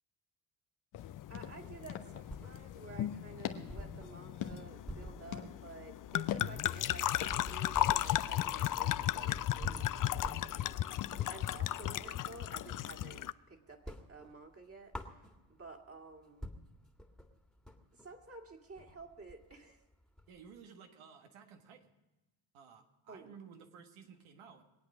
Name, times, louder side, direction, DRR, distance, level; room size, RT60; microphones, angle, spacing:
sound 1, 0.9-13.2, left 9 dB, 80° left, 1.2 m, -47 dB
sound 2, 1.0-13.3, left 13 dB, 45° left, 0.5 m, -36 dB
voice 1, 1.3-16.5 17.9-19.8 23.1-23.3, right 3 dB, 30° right, 2 dB, 2.2 m, -52 dB
sound 3, 1.8-2.9 3.2-3.3 3.7-12.3 12.7-13.4 13.7-15.7 16.1-16.2 16.4-20.6, equal, ahead, 1.8 m, -48 dB
voice 2, 20.3-22.0 22.5-24.6, right 6 dB, 85° right, 5 dB, 1.6 m, -55 dB
22.0 x 8.7 x 6.2 m, 1.0 s
supercardioid pair, 60°, 48 cm